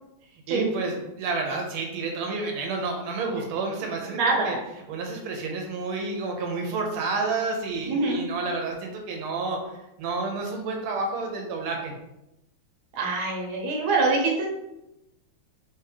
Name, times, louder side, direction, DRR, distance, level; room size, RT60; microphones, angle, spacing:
voice 1, 0.3-4.6 4.9-11.9, right 3 dB, 90° right, 1 dB, 1.6 m, -30 dB
voice 2, 4.2-4.6 7.8-8.2 12.9-14.5, right 3 dB, 75° right, 0 dB, 1.6 m, -24 dB
3.6 x 3.3 x 3.3 m, 0.90 s
omnidirectional pair, 2.3 m